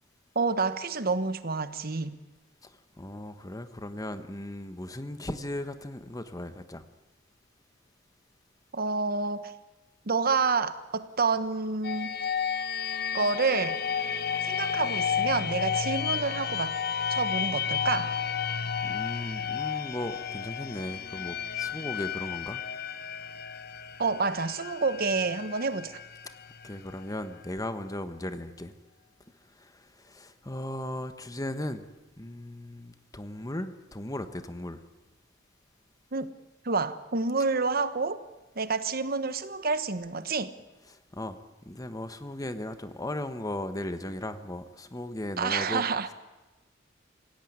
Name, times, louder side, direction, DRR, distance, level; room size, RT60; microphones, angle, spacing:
voice 1, 0.3-2.2 8.7-9.5 10.1-12.1 13.1-13.8 14.4-16.7 17.1-18.1 24.0-25.9 36.1-36.3 36.6-38.2 38.6-40.5 45.4-46.1, right 4 dB, 50° right, 12 dB, 1.2 m, -28 dB
voice 2, 3.0-6.8 18.8-22.6 26.6-28.7 30.0-31.8 32.2-34.8 41.1-41.4 41.6-45.8, left 1 dB, 20° left, 10 dB, 1.3 m, -37 dB
sound 1, 11.8-27.5, left 7 dB, 55° left, 1.0 m, -32 dB
26.5 x 17.0 x 9.6 m, 1.1 s
head